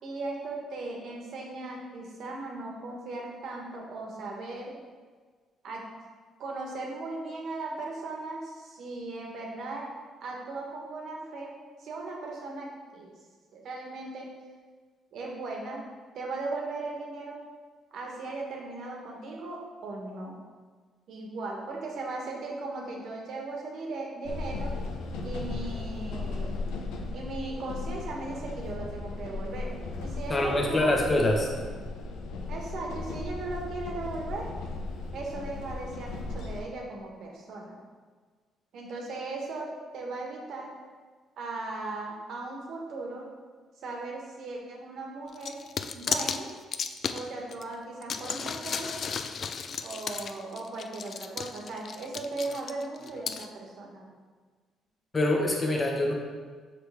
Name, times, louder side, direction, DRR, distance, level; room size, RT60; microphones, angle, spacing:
voice 1, 0.0-4.8 5.6-5.8 6.4-9.9 10.2-11.5 11.8-13.1 13.5-14.3 15.1-15.8 16.1-17.4 17.9-20.4 21.1-24.7 25.2-26.6 27.1-31.2 32.5-34.5 35.1-37.8 38.7-39.7 39.9-40.7 41.4-43.3 43.8-45.6 45.9-46.5 47.1-48.9 49.8-54.1, right 3 dB, 65° right, -1 dB, 1.3 m, -37 dB
sound 1, 24.3-36.6, left 3 dB, 85° left, 0.7 m, -36 dB
voice 2, 30.3-31.5 55.1-56.1, left 1 dB, 25° left, 0 dB, 1.1 m, -25 dB
sound 2, 45.3-47.6 48.0-53.5, left 6 dB, 50° left, 0.3 m, -34 dB
6.1 x 4.8 x 3.4 m, 1.5 s
cardioid pair, 105°, 0 cm